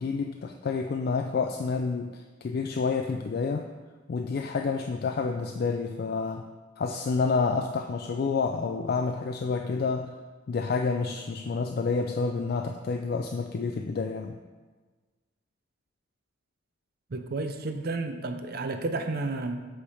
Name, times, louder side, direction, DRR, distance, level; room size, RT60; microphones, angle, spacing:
voice 1, 0.0-3.7 4.1-6.4 6.8-10.2 10.5-14.4, left 4 dB, 55° left, 4 dB, 0.3 m, -29 dB
voice 2, 17.1-19.6, right 3 dB, 55° right, 7 dB, 0.5 m, -31 dB
7.8 x 3.5 x 4.8 m, 1.3 s
head